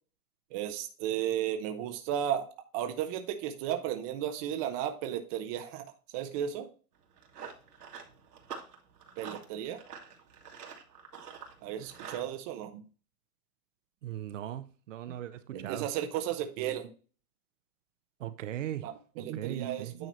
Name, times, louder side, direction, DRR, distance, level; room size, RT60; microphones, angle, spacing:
voice 1, 0.5-2.4 2.7-5.8 6.1-6.7 9.2-9.8 11.6-12.8 15.5-16.9 18.8-20.1, right 10 dB, 25° right, 0.8 m, -34 dB
Run, 6.9-12.3, right 6 dB, 80° right, 2.3 m, -47 dB
voice 2, 14.0-15.9 18.2-18.9 19.2-19.9, right 12 dB, 55° right, 0.8 m, -39 dB
9.4 x 3.8 x 4.3 m
hypercardioid pair, 145°, 45 cm